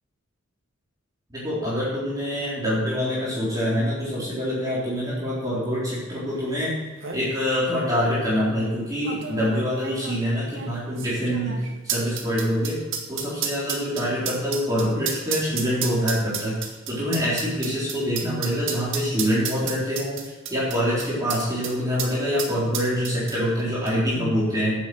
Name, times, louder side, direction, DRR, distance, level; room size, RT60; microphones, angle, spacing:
voice 1, 1.3-6.7 7.1-11.6 11.8-12.8 13.1-16.5 16.9-24.7, equal, 20° right, -9 dB, 4.1 m, -25 dB
sound 1, 6.5-6.6 6.8-7.2 8.0-8.1 9.1-21.7 22.0-22.1 22.4-23.6 23.9-24.0, right 7 dB, 70° right, 1.9 m, -31 dB
10.0 x 8.0 x 8.0 m, 1.3 s
head